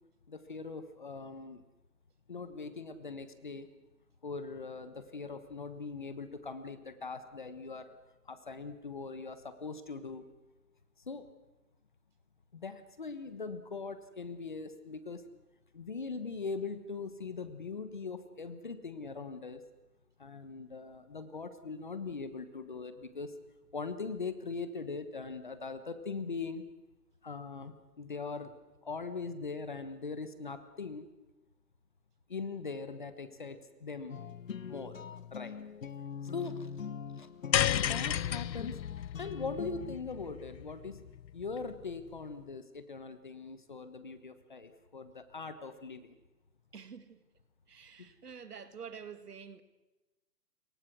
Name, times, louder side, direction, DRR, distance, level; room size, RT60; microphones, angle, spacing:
voice 1, 0.3-1.6 2.3-3.7 4.2-8.0 8.2-10.3 11.1-11.3 12.5-15.2 15.7-19.6 20.2-23.3 23.7-26.6 27.2-28.5 28.8-31.1 32.3-34.2 34.6-35.0 35.3-35.6 36.2-36.7 37.2-37.3 37.7-38.8 39.2-41.0 41.3-46.2 48.0-48.1, left 4 dB, 30° left, 1.2 m, -41 dB
sound 1, 34.1-40.0, left 6 dB, 50° left, 1.1 m, -43 dB
sound 2, 37.5-41.9, left 10 dB, 85° left, 0.8 m, -33 dB
voice 2, 46.7-47.2 47.7-49.6, right 6 dB, 65° right, 2.2 m, -47 dB
28.5 x 23.0 x 6.2 m
hypercardioid pair, 180°, 50 cm